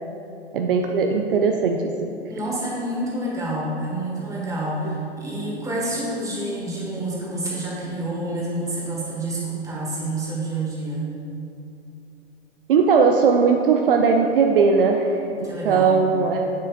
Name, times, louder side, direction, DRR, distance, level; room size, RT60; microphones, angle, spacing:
voice 1, 0.5-1.8 12.7-16.4, right 5 dB, 60° right, 3 dB, 0.5 m, -19 dB
voice 2, 2.3-11.1 15.4-16.0, right 1 dB, 10° right, -5 dB, 1.5 m, -28 dB
7.5 x 6.8 x 2.4 m, 2.7 s
figure-of-eight pair, 100°, 32 cm